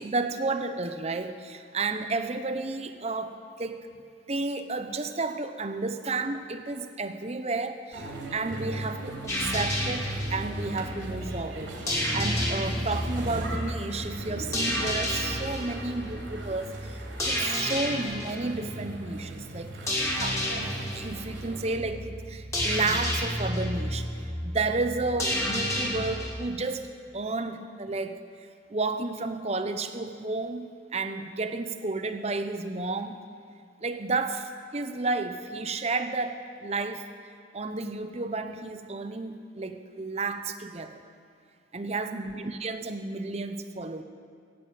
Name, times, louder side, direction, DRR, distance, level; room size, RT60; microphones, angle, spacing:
voice 1, 0.0-3.9 4.3-17.0 17.2-26.9 27.1-28.2 28.7-33.2 33.8-37.1 37.5-41.0 41.7-44.0, right 3 dB, 35° right, 8 dB, 0.7 m, -32 dB
sound 1, 7.9-21.8, right 1 dB, 80° right, 3.1 m, -39 dB
sound 2, 9.3-26.3, left 1 dB, 15° left, 2.2 m, -31 dB
15.5 x 9.5 x 8.4 m, 2.2 s
head